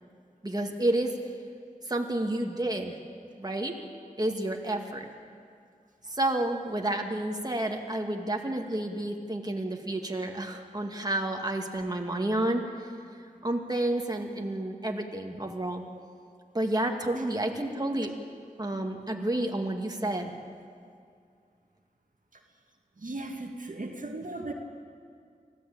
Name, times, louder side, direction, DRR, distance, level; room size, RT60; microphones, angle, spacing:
voice 1, 0.4-1.1 1.9-2.9 3.4-3.7 4.2-5.1 6.1-12.6 13.4-15.8 16.5-18.1 18.6-20.3, right 1 dB, 25° right, 2 dB, 2.3 m, -30 dB
voice 2, 23.0-24.5, right 2 dB, 65° right, 2 dB, 2.0 m, -37 dB
24.5 x 15.5 x 8.8 m, 2.3 s
wide cardioid pair, 55°, 15 cm